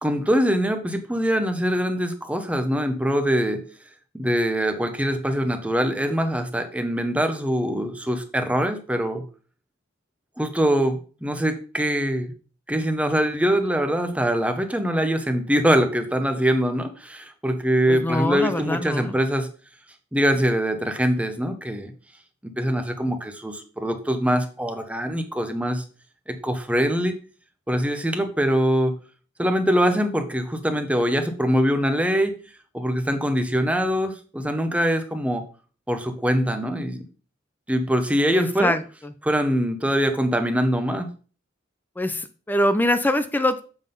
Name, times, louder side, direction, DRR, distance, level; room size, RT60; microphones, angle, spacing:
voice 1, 0.0-3.6 4.1-9.2 10.4-12.3 12.7-19.5 20.1-21.9 22.4-25.8 26.3-27.1 27.7-29.0 29.4-32.3 32.7-35.4 35.9-37.0 37.7-38.7 39.2-41.1, equal, 5° right, 7 dB, 0.8 m, -23 dB
voice 2, 17.9-19.1 38.3-39.1 42.0-43.6, left 1 dB, 10° left, 11 dB, 0.4 m, -24 dB
7.2 x 3.9 x 5.4 m, 0.38 s
head